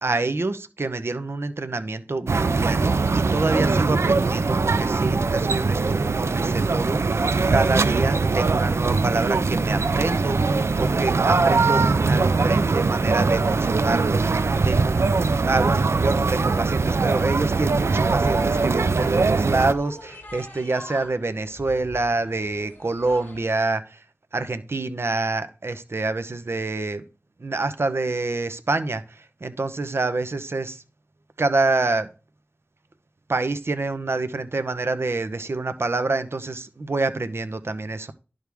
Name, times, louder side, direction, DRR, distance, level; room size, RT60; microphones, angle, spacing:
voice 1, 0.0-15.1 15.4-24.0 24.3-27.0 27.4-30.8 31.4-32.1 33.3-38.1, right 3 dB, 70° right, 1.0 m, -27 dB
sound 1, 2.3-19.7, right 4 dB, 85° right, 0.5 m, -21 dB
sound 2, 16.5-23.4, left 1 dB, 40° left, 4.4 m, -44 dB
11.0 x 6.5 x 3.5 m
wide cardioid pair, 50°, 4 cm